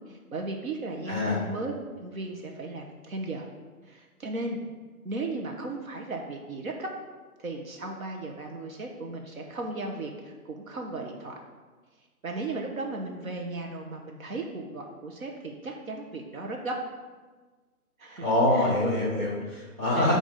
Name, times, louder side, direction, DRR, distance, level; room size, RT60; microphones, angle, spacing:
voice 1, 0.1-1.7 2.0-3.5 3.8-4.7 5.0-6.9 7.4-11.4 12.2-16.8 18.0-18.3 18.5-18.7 19.4-19.5 20.0-20.2, right 2 dB, 65° right, 1 dB, 0.9 m, -36 dB
voice 2, 1.1-1.4 18.2-20.2, left 1 dB, 10° right, -7 dB, 1.3 m, -25 dB
7.7 x 2.7 x 4.9 m, 1.4 s
hypercardioid pair, 175°, 45 cm